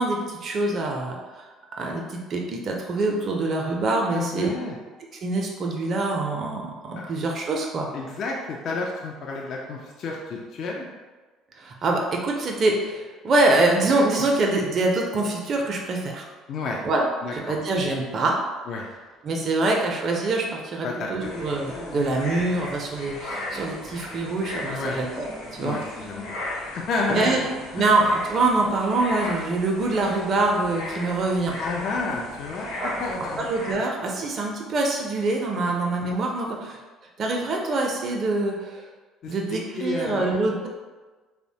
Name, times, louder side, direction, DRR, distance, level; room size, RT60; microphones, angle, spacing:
voice 1, 0.0-1.4 1.8-4.5 5.2-7.9 11.6-16.3 16.8-17.0 17.3-18.4 19.2-25.8 27.1-27.4 27.7-31.6 32.8-32.9 33.4-36.8 37.2-38.8 39.3-40.7, right 2 dB, 45° right, 0 dB, 0.4 m, -25 dB
voice 2, 4.1-4.8 7.9-10.9 16.5-16.8 17.2-17.3 18.7-18.9 20.8-21.1 24.6-25.0 25.6-26.2 26.7-27.5 27.8-27.9 31.6-33.5 39.2-40.4, left 3 dB, 55° left, -1 dB, 0.4 m, -30 dB
sound 1, 21.2-33.7, left 1 dB, 85° left, 0.7 m, -36 dB
3.0 x 2.1 x 2.7 m, 1.3 s
hypercardioid pair, 65°, 0 cm